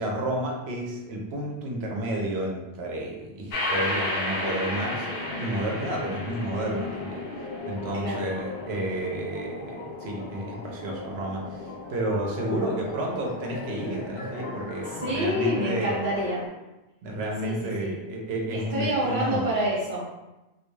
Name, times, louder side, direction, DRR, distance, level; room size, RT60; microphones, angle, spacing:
voice 1, 0.0-5.1 5.4-7.2 7.7-16.0 17.0-19.5, right 1 dB, 75° right, -1 dB, 0.8 m, -31 dB
sound 1, 3.5-16.5, left 2 dB, 65° left, 0.7 m, -34 dB
voice 2, 12.3-12.8 15.0-16.4 17.4-17.5 17.8-17.9 18.5-20.0, equal, 35° right, -7 dB, 0.8 m, -27 dB
2.2 x 2.2 x 3.1 m, 1.0 s
omnidirectional pair, 1.1 m